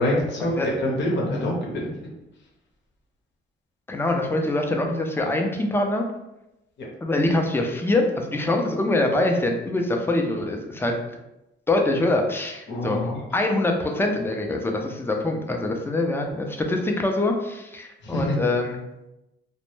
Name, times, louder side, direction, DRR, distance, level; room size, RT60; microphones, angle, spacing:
voice 1, 0.0-1.9 6.8-6.9 12.7-13.2 18.0-18.4, left 1 dB, 65° left, -3 dB, 0.8 m, -25 dB
voice 2, 3.9-6.1 7.0-11.0 11.7-13.0 13.3-18.8, left 2 dB, 10° left, 2 dB, 0.4 m, -24 dB
2.1 x 2.1 x 3.0 m, 0.92 s
cardioid pair, 90°, 20 cm